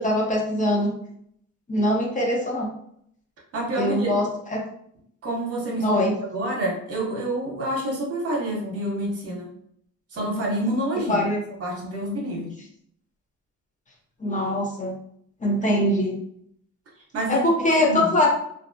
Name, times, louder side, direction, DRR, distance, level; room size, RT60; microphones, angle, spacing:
voice 1, 0.0-0.9 1.7-2.7 3.8-4.6 5.8-6.1 11.1-11.4 14.2-14.9 15.4-16.2 17.3-18.3, left 1 dB, 25° left, -3 dB, 0.7 m, -22 dB
voice 2, 3.5-4.2 5.2-9.5 10.1-11.3 11.6-12.5 15.6-15.8 17.1-18.1, right 1 dB, 50° right, -1 dB, 0.9 m, -28 dB
2.4 x 2.0 x 2.6 m, 0.69 s
cardioid pair, 90°, 30 cm